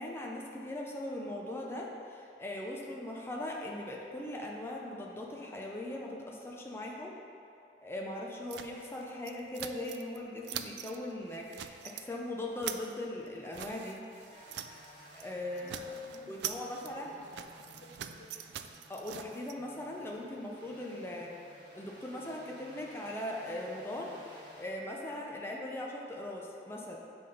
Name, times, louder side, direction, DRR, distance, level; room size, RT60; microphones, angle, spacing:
voice 1, 0.0-7.2 7.8-14.1 15.1-15.8 16.3-17.1 18.9-21.4 21.7-27.0, left 1 dB, 15° left, -2 dB, 0.5 m, -40 dB
sound 1, 8.5-10.2 10.4-11.0 11.3-12.1 12.4-14.9 15.1-15.3 15.6-19.5, right 10 dB, 75° right, 0.3 m, -43 dB
Mechanisms, 14.1-15.6, equal, 45° right, 1.6 m, -58 dB
sound 2, 14.3-24.7, equal, 25° right, 1.2 m, -57 dB
voice 2, 15.5-18.3, left 1 dB, 85° left, 1 dB, 0.7 m, -55 dB
7.6 x 3.4 x 5.3 m, 2.6 s
head